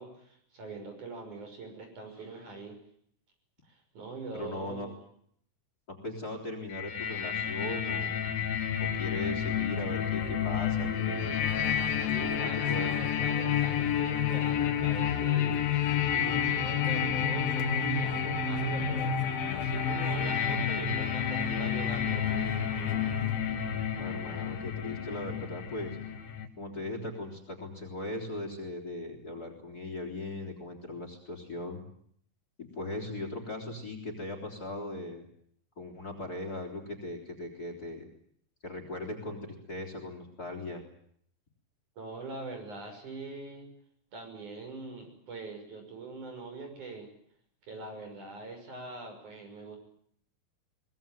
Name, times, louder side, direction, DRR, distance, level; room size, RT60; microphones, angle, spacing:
voice 1, 0.0-2.8 3.7-5.0 11.9-15.6 16.0-19.1 19.5-22.4 42.0-43.7 44.1-47.1 47.7-49.8, right 3 dB, 55° right, 5 dB, 7.6 m, -43 dB
voice 2, 4.3-4.9 5.9-8.3 8.8-11.4 12.2-12.9 24.0-26.0 26.6-31.8 32.6-35.3 35.8-38.1 38.6-40.8, left 2 dB, 25° left, 5 dB, 4.2 m, -39 dB
sound 1, 6.7-26.5, left 8 dB, 80° left, 3.7 m, -30 dB
Singing / Church bell, 11.4-23.3, right 2 dB, 40° right, 5.6 m, -48 dB
23.5 x 20.5 x 9.1 m, 0.66 s
omnidirectional pair, 4.1 m